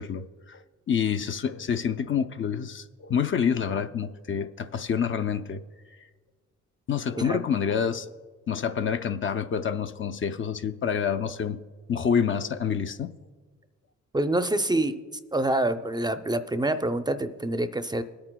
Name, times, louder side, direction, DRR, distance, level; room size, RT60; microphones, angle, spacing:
voice 1, 0.0-5.6 6.9-8.1 8.5-11.6 11.9-13.1, left 7 dB, 40° left, 10 dB, 0.5 m, -27 dB
voice 2, 14.1-15.0 15.3-18.0, right 1 dB, 15° right, 9 dB, 0.5 m, -26 dB
21.0 x 8.8 x 2.2 m, 1.4 s
cardioid pair, 90°, 30 cm